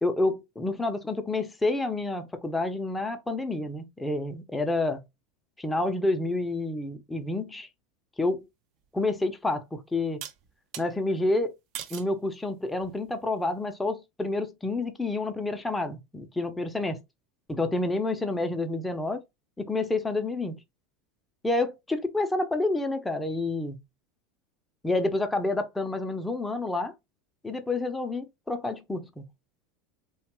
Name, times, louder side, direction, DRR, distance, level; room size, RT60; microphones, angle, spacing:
voice 1, 0.0-5.0 5.6-7.7 8.2-8.4 8.9-10.2 10.8-11.5 11.9-17.0 17.5-19.2 19.6-20.6 21.4-23.8 24.8-26.9 27.4-29.2, left 2 dB, 10° left, 0.5 m, -29 dB
sound 1, 8.8-8.9 10.2-10.9 11.7-12.1 12.8-13.2, right 10 dB, 55° right, 0.4 m, -40 dB
2.8 x 2.2 x 2.9 m
hypercardioid pair, 100°, 0 cm